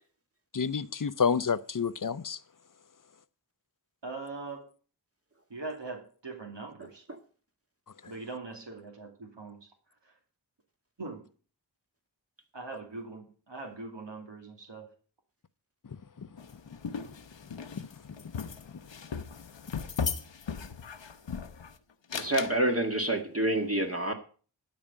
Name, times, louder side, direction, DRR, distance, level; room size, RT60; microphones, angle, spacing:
voice 1, 0.5-2.4 16.2-16.3 17.8-17.9, left 6 dB, 45° left, 0.7 m, -29 dB
voice 2, 4.0-4.7 5.5-7.1 8.1-9.7 10.0-10.1 11.0-11.3 12.5-14.9, right 3 dB, 75° right, 2.6 m, -41 dB
sound 1, 16.4-21.7 22.1-22.6, left 6 dB, 85° left, 1.0 m, -37 dB
voice 3, 22.1-24.1, right 1 dB, 30° right, 1.9 m, -27 dB
12.5 x 5.1 x 8.6 m
wide cardioid pair, 55°, 43 cm